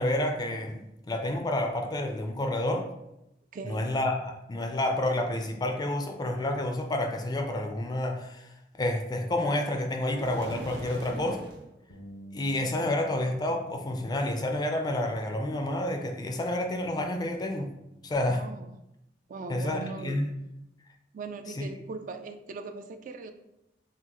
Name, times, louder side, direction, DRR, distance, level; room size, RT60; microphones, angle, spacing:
voice 1, 0.0-2.9 3.6-11.4 12.3-17.7 18.0-18.4 19.5-20.3 21.6-21.7, left 1 dB, 25° left, 4 dB, 0.4 m, -29 dB
voice 2, 3.5-3.9 18.3-18.7 19.3-20.2 21.1-23.3, right 4 dB, 45° right, 7 dB, 0.3 m, -39 dB
sound 1, 10.1-11.7, right 1 dB, 65° right, 0.7 m, -40 dB
Bass guitar, 11.9-18.1, right 1 dB, 80° left, 0.7 m, -52 dB
5.8 x 2.4 x 2.9 m, 0.88 s
head